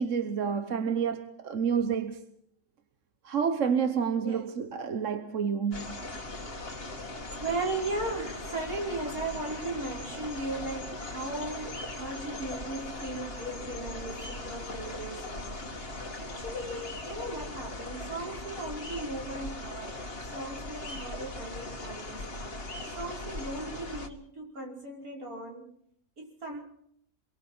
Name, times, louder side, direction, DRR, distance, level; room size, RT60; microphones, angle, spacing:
voice 1, 0.0-2.2 3.2-6.0, right 6 dB, 60° right, 1.4 m, -29 dB
sound 1, 5.7-24.1, left 2 dB, 40° left, 2.0 m, -39 dB
voice 2, 7.4-15.6 16.2-20.0 20.3-22.3 22.9-25.7 26.2-26.6, right 2 dB, 75° right, 5.8 m, -37 dB
26.5 x 23.0 x 4.4 m
omnidirectional pair, 1.5 m